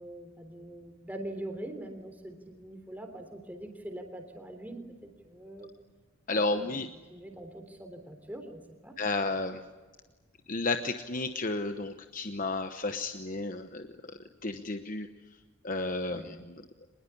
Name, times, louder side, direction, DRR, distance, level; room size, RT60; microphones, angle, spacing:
voice 1, 0.0-5.7 6.3-6.8 7.1-9.0 16.1-16.3, right 1 dB, 10° right, 5 dB, 3.4 m, -43 dB
voice 2, 6.3-6.9 9.0-9.6 10.5-15.1 15.6-16.9, left 3 dB, 40° left, 7 dB, 1.0 m, -32 dB
25.5 x 21.0 x 10.0 m, 1.4 s
head